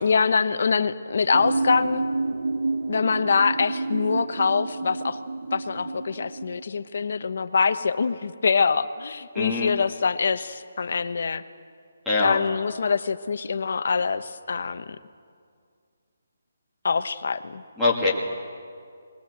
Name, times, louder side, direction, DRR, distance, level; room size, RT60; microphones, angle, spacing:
voice 1, 0.0-2.0 2.9-5.2 5.5-11.4 12.2-15.0 16.8-17.6, left 5 dB, 55° left, 11 dB, 0.9 m, -24 dB
sound 1, 1.3-6.6, right 3 dB, 75° right, 0.8 m, -29 dB
voice 2, 9.3-9.7 12.1-12.4 17.8-18.1, left 3 dB, ahead, -6 dB, 2.1 m, -23 dB
20.5 x 18.5 x 8.2 m, 2.2 s
hypercardioid pair, 170°, 0 cm